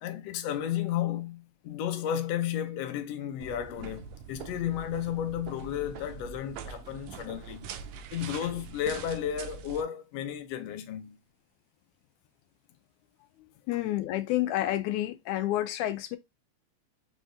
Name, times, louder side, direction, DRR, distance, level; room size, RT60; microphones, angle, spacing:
voice 1, 0.0-7.7 8.1-11.2, left 10 dB, 70° left, 1.8 m, -33 dB
sound 1, 3.4-9.8, right 7 dB, 75° right, 1.8 m, -43 dB
voice 2, 13.7-16.2, left 14 dB, 85° left, 2.1 m, -29 dB
5.2 x 3.5 x 2.5 m
omnidirectional pair, 3.3 m